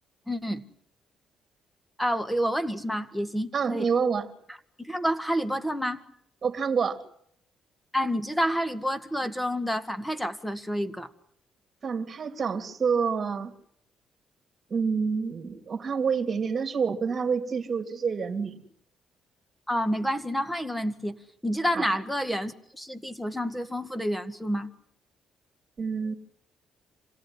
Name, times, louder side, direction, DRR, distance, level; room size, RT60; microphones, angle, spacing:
voice 1, 0.3-0.6 2.0-3.9 4.8-6.0 7.9-11.1 19.7-21.2 21.4-24.7, equal, 5° left, 12 dB, 2.0 m, -29 dB
voice 2, 3.5-4.3 6.4-7.0 11.8-13.5 14.7-18.6 21.7-21.9 25.8-26.1, right 6 dB, 40° right, 7 dB, 3.0 m, -27 dB
27.0 x 17.5 x 9.8 m, 0.71 s
cardioid pair, 90°, 0 cm